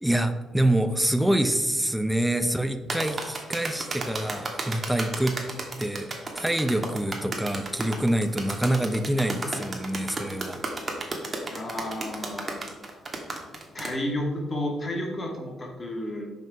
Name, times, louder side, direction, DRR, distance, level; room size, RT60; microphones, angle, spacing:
voice 1, 0.0-5.4 5.8-10.6, right 1 dB, 5° right, 8 dB, 0.6 m, -26 dB
sound 1, 2.9-13.9, right 2 dB, 30° right, 1.5 m, -33 dB
voice 2, 11.5-12.6 13.7-16.3, left 1 dB, 30° left, 1 dB, 1.8 m, -31 dB
5.6 x 5.4 x 5.1 m, 1.2 s
cardioid pair, 90°, 0 cm